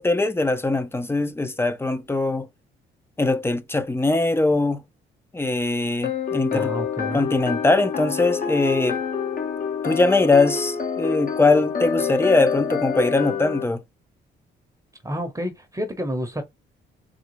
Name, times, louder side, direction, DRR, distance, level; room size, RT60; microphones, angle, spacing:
voice 1, 0.0-2.5 3.2-4.8 5.3-6.7 7.1-9.0 9.8-13.8, left 2 dB, 10° left, 0.6 m, -21 dB
sound 1, 6.0-13.7, left 6 dB, 45° left, 1.0 m, -27 dB
voice 2, 6.5-7.3 15.0-16.4, equal, 15° right, 0.9 m, -29 dB
3.7 x 2.3 x 3.0 m
cardioid pair, 90°, 20 cm